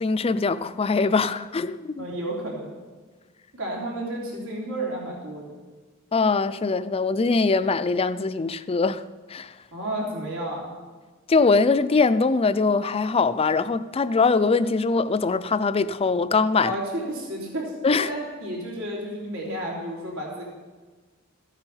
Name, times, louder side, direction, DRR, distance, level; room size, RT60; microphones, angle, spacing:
voice 1, 0.0-2.1 6.1-9.0 9.3-9.5 11.3-16.7 17.8-18.1, left 4 dB, 25° left, 0.4 m, -22 dB
voice 2, 2.0-2.7 3.5-5.5 9.7-10.7 16.6-20.4, right 1 dB, 80° right, 3.2 m, -32 dB
14.5 x 9.0 x 5.6 m
head